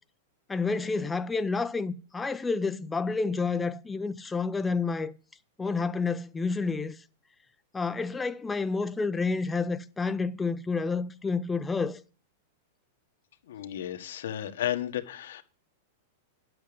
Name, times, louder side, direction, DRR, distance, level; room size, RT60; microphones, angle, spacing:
voice 1, 0.5-5.1 5.6-7.0 7.7-12.0, left 4 dB, 5° left, 0.5 m, -29 dB
voice 2, 13.4-15.4, left 11 dB, 75° left, 1.5 m, -33 dB
11.0 x 7.9 x 5.2 m
supercardioid pair, 170°, 0 cm